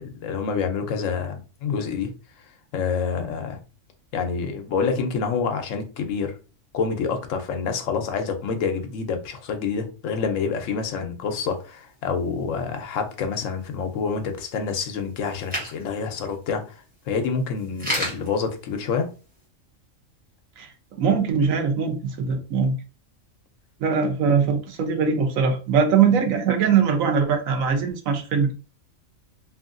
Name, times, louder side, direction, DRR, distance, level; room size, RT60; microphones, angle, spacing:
voice 1, 0.0-2.1 2.7-3.6 4.1-6.3 6.7-16.6 17.1-19.1, left 5 dB, 75° left, 1.0 m, -27 dB
sound 1, 11.3-19.4, equal, 5° right, 1.0 m, -37 dB
voice 2, 21.0-22.7 23.8-28.5, right 6 dB, 85° right, 1.1 m, -21 dB
2.9 x 2.7 x 2.5 m
omnidirectional pair, 1.4 m